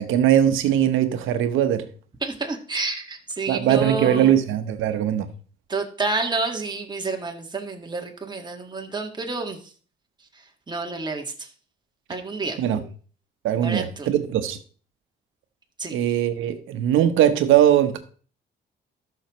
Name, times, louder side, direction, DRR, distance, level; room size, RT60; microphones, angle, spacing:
voice 1, 0.0-1.8 3.5-5.3 12.6-12.8 13.4-14.6 15.9-18.0, right 10 dB, 90° right, 1.1 m, -20 dB
voice 2, 2.2-4.4 5.7-9.6 10.7-11.5 12.1-12.6 13.6-14.1 15.8-16.0, right 3 dB, 20° right, 1.9 m, -29 dB
13.5 x 6.4 x 3.1 m
cardioid pair, 90°, 20 cm